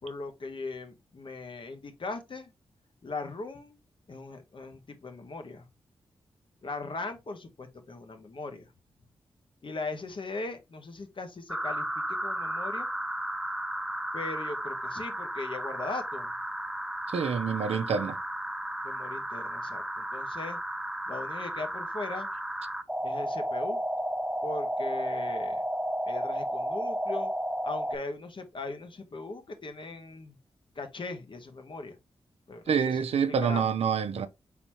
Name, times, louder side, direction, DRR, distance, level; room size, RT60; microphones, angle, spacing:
voice 1, 0.0-2.5 3.0-3.8 4.1-5.7 6.6-8.7 9.6-11.9 12.2-12.9 14.1-16.3 18.8-20.6 21.1-22.3 23.0-23.8 24.4-25.6 26.0-27.3 27.6-30.4 30.7-32.0 32.5-33.6, left 3 dB, 50° left, 1.2 m, -39 dB
sound 1, 11.5-28.0, right 1 dB, 5° right, 0.5 m, -33 dB
voice 2, 17.1-18.2 32.7-34.3, right 6 dB, 70° right, 0.6 m, -27 dB
4.2 x 4.1 x 2.9 m
supercardioid pair, 45°, 11 cm